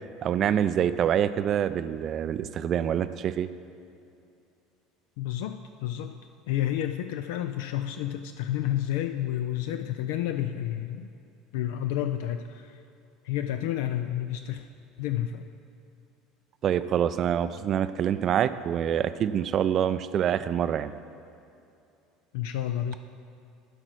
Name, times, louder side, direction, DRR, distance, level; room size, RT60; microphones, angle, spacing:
voice 1, 0.2-3.5 16.6-20.9, right 9 dB, 40° right, 13 dB, 0.4 m, -26 dB
voice 2, 5.2-6.2 6.5-11.1 11.5-12.8 13.2-14.7 15.0-15.4 22.3-23.0, left 12 dB, 60° left, 7 dB, 0.3 m, -30 dB
11.5 x 4.9 x 6.2 m, 2.6 s
figure-of-eight pair, 65°, 0 cm